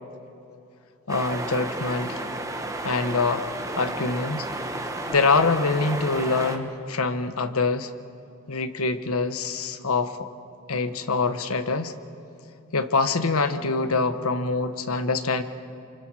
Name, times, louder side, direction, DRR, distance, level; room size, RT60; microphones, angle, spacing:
voice 1, 1.1-2.2 2.8-3.5 3.8-4.5 5.1-7.9 8.5-10.3 10.7-11.9 12.7-15.4, left 3 dB, 85° left, 10 dB, 1.1 m, -25 dB
sound 1, 1.1-6.6, right 2 dB, 15° right, 1.2 m, -32 dB
29.0 x 27.0 x 4.7 m, 2.7 s
head